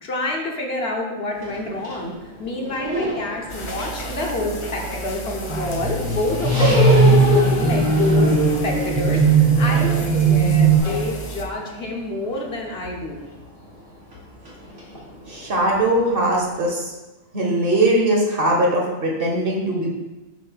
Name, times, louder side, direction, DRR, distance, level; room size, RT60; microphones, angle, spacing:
voice 1, 0.0-2.1 2.4-8.3 8.6-13.2, left 2 dB, 55° left, 0 dB, 1.0 m, -28 dB
sound 1, 1.3-16.5, left 2 dB, 85° right, 1.9 m, -29 dB
sound 2, 3.5-11.5, right 1 dB, 40° left, 0.4 m, -33 dB
sound 3, 5.5-10.8, right 4 dB, 30° right, 0.9 m, -18 dB
voice 2, 15.3-16.8 17.3-19.9, right 1 dB, 50° right, -1 dB, 1.2 m, -20 dB
7.4 x 2.7 x 5.5 m, 1.1 s
omnidirectional pair, 1.3 m